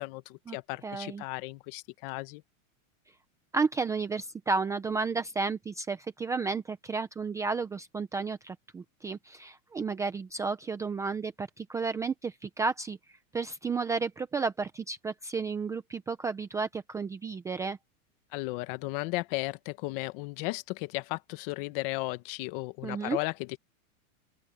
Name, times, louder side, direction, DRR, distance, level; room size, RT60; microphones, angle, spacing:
voice 1, 0.0-2.4 18.3-23.6, left 22 dB, 40° left, 1.4 m, -35 dB
voice 2, 0.8-1.2 3.5-13.0 13.3-17.8 22.8-23.2, right 4 dB, 10° right, 0.5 m, -32 dB
open air
supercardioid pair, 160°, 41 cm